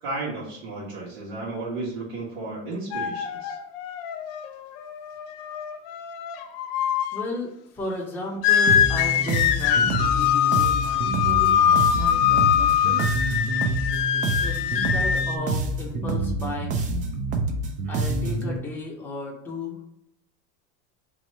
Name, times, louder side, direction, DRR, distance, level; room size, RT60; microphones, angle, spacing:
voice 1, 0.0-3.5, right 2 dB, 80° right, -9 dB, 1.4 m, -33 dB
sound 1, 2.9-7.2 8.4-15.4, left 9 dB, 65° left, 0.5 m, -23 dB
voice 2, 7.1-13.0 14.4-16.9 17.9-19.8, left 2 dB, 5° left, -3 dB, 0.7 m, -35 dB
sound 2, 8.7-18.6, right 2 dB, 25° right, 0.3 m, -27 dB
2.9 x 2.7 x 4.2 m, 0.76 s
supercardioid pair, 150°, 31 cm